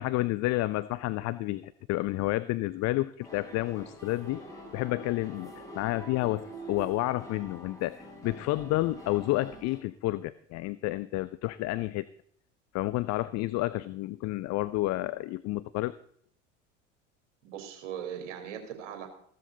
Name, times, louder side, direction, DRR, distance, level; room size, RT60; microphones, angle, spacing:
voice 1, 0.0-4.4 4.7-12.1 12.7-15.9, left 18 dB, 45° left, 16 dB, 0.7 m, -30 dB
sound 1, 3.2-9.8, right 1 dB, 10° left, 7.7 m, -45 dB
voice 2, 17.4-19.1, right 9 dB, 65° right, 4 dB, 4.0 m, -39 dB
15.5 x 13.0 x 4.0 m, 0.63 s
figure-of-eight pair, 70°, 37 cm